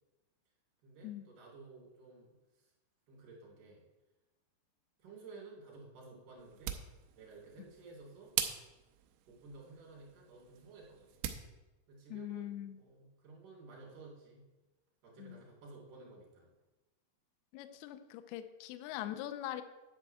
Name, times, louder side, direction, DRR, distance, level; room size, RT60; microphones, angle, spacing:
voice 1, 0.8-2.7 3.1-3.8 5.0-6.8 7.1-8.3 9.3-11.2 11.9-14.4 15.0-16.5, right 3 dB, 50° right, -3 dB, 4.3 m, -54 dB
sound 1, 6.4-11.5, right 10 dB, 85° right, 2.9 m, -42 dB
voice 2, 12.1-12.8 15.2-15.4 17.5-19.6, left 12 dB, 80° left, 9 dB, 2.3 m, -42 dB
10.5 x 4.6 x 7.7 m, 1.1 s
omnidirectional pair, 5.3 m